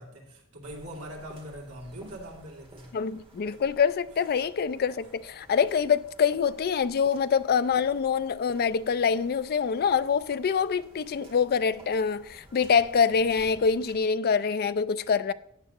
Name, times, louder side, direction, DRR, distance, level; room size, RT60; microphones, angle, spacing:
voice 1, 0.0-3.0, equal, 85° right, 2.7 m, -42 dB
sound 1, 0.6-13.9, right 1 dB, 25° right, 2.1 m, -53 dB
voice 2, 2.9-15.3, left 6 dB, 45° left, 0.4 m, -25 dB
14.0 x 8.8 x 3.0 m
head